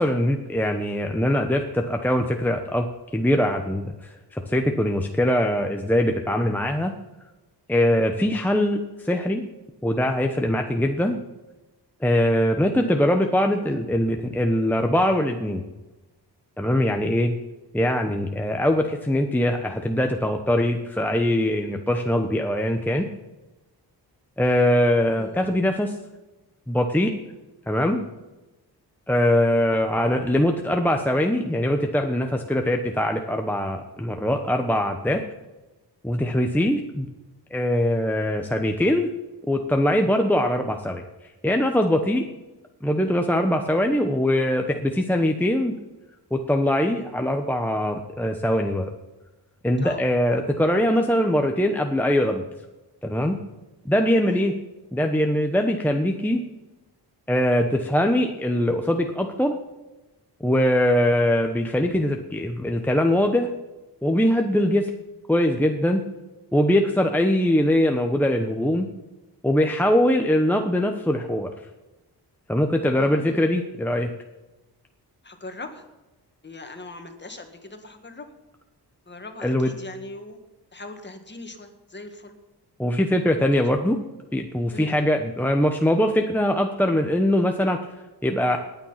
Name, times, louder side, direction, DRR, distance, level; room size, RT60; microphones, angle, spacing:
voice 1, 0.0-2.9 3.1-6.9 7.7-9.4 9.8-11.2 12.0-15.6 16.6-17.3 17.7-23.1 24.4-26.0 26.7-27.1 27.7-28.0 29.1-35.2 36.0-37.1 37.5-39.1 39.5-42.2 42.8-45.7 46.3-48.9 49.6-52.4 53.0-53.4 53.8-54.5 54.9-56.4 57.3-59.6 60.4-63.5 64.0-64.9 65.3-66.0 66.5-68.9 69.4-71.5 72.5-74.1 79.4-79.7 82.8-84.0 84.3-87.8 88.2-88.6, left 1 dB, 5° left, 3 dB, 1.0 m, -22 dB
voice 2, 72.9-73.5 75.2-75.9 76.4-78.3 79.1-80.4 80.7-82.4 83.5-83.6 84.7-85.0, left 2 dB, 25° left, 6 dB, 2.0 m, -40 dB
18.5 x 9.2 x 5.8 m, 1.1 s
wide cardioid pair, 110°, 41 cm